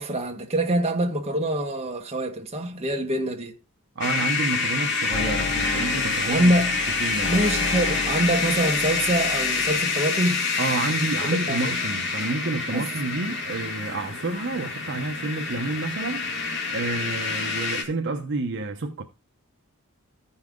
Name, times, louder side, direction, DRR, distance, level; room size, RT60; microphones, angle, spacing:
voice 1, 0.0-3.5 5.7-5.8 6.2-6.8 7.3-10.5 11.2-11.8 12.7-12.9, right 1 dB, 30° right, 1.5 m, -25 dB
sound 1, 4.0-17.8, left 4 dB, 55° left, 2.1 m, -27 dB
voice 2, 4.0-6.5 7.0-7.4 10.6-16.3 16.7-19.0, right 2 dB, 55° right, 0.9 m, -29 dB
sound 2, 5.1-10.0, left 3 dB, 30° left, 0.6 m, -34 dB
14.0 x 5.6 x 3.8 m
head